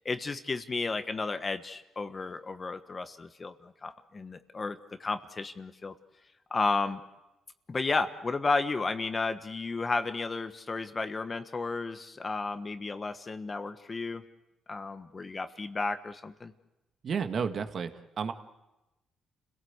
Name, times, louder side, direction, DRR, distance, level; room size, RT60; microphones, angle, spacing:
voice 1, 0.0-5.9 6.5-7.0 7.7-14.2 14.7-16.5, left 3 dB, 30° left, 9 dB, 1.3 m, -33 dB
voice 2, 17.0-17.9 18.2-18.3, right 6 dB, 55° right, 7 dB, 1.8 m, -31 dB
29.5 x 17.5 x 8.1 m, 0.99 s
cardioid pair, 90°, 0 cm